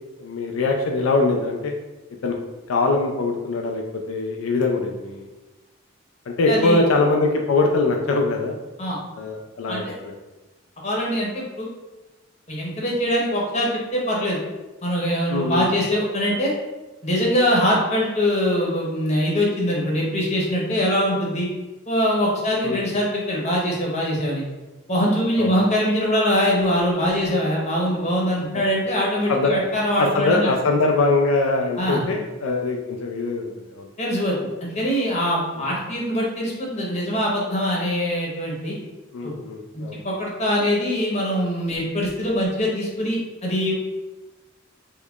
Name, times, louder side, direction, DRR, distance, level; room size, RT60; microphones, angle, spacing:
voice 1, 0.2-1.7 2.2-2.4 2.7-3.8 4.1-5.3 6.3-8.6 9.2-10.2 15.3-15.7 22.6-22.8 25.4-25.5 29.3-29.5 30.0-33.9 35.6-35.7 39.1-40.0, left 3 dB, 85° left, 2 dB, 0.4 m, -22 dB
voice 2, 6.5-6.8 8.8-9.0 9.7-9.8 10.8-11.7 12.5-14.4 14.8-16.5 17.0-21.5 21.9-24.4 24.9-30.5 31.8-32.0 34.0-38.8 39.2-39.3 39.7-43.7, equal, 35° left, -3 dB, 0.9 m, -23 dB
3.6 x 3.1 x 2.3 m, 1.1 s
head